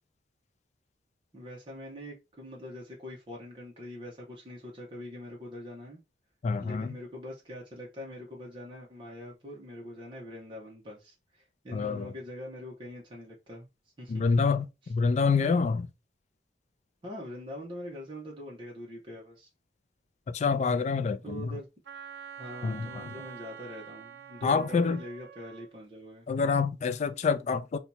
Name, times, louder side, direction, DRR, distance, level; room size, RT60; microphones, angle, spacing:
voice 1, 1.3-6.0 6.6-13.7 14.0-14.2 17.0-19.5 21.2-21.7 22.4-26.3, left 1 dB, 30° right, 0.8 m, -43 dB
voice 2, 6.4-6.9 11.7-12.1 14.1-15.9 20.3-21.5 22.6-23.0 24.4-25.0 26.3-27.8, left 5 dB, 40° left, 0.3 m, -27 dB
Wind instrument woodwind instrument, 21.9-25.7, right 7 dB, 75° right, 0.5 m, -46 dB
2.8 x 2.3 x 4.0 m
head